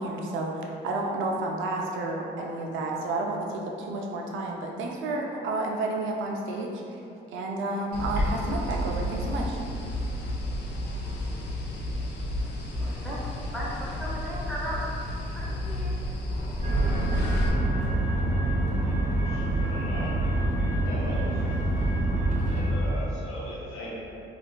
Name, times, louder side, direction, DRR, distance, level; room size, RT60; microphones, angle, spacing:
voice 1, 0.0-7.0 7.3-9.6, right 2 dB, 75° right, 0 dB, 0.4 m, -31 dB
sound 1, 7.9-17.5, left 1 dB, 60° left, 0.4 m, -31 dB
voice 2, 12.8-13.3 13.5-14.8 15.3-15.9, equal, ahead, -7 dB, 0.7 m, -36 dB
sound 2, 16.6-22.8, right 1 dB, 35° right, 0.8 m, -26 dB
voice 3, 19.2-20.2 20.8-21.5 22.4-23.9, equal, 80° left, -6 dB, 0.8 m, -39 dB
3.4 x 2.3 x 2.2 m, 2.7 s
cardioid pair, 90°, 20 cm